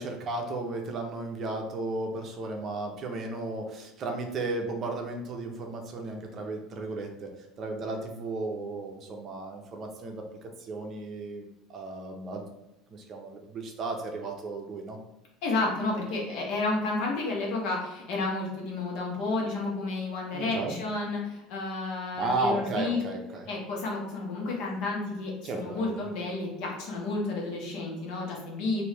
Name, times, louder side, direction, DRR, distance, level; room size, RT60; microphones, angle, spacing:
voice 1, 0.0-7.3 7.6-12.4 12.9-15.0 20.3-20.8 22.1-23.4 25.4-26.1, right 2 dB, 35° right, 3 dB, 0.6 m, -34 dB
voice 2, 15.4-23.0 23.5-28.8, left 3 dB, 65° left, -2 dB, 1.0 m, -31 dB
3.0 x 2.6 x 3.3 m, 0.95 s
cardioid pair, 155°, 0 cm